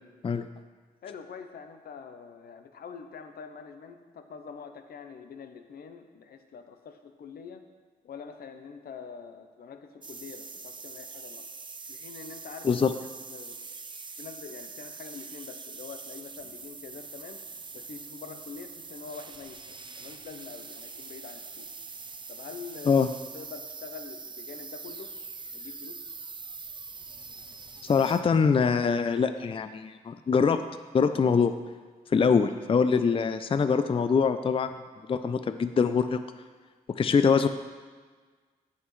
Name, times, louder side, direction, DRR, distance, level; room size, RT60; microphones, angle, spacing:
voice 1, 1.0-7.6 8.0-11.5 11.9-12.8 13.3-13.6 14.2-17.4 17.7-21.7 22.3-23.1 23.3-25.1 25.5-26.0, left 6 dB, 75° left, 7 dB, 0.7 m, -45 dB
sound 1, 10.0-28.2, right 4 dB, 30° right, 0.6 m, -43 dB
voice 2, 27.8-30.6 30.9-31.5 32.1-34.7 35.1-36.2 37.0-37.5, left 5 dB, 35° left, 10 dB, 0.4 m, -23 dB
14.5 x 5.7 x 3.2 m, 1.5 s
cardioid pair, 65°, 16 cm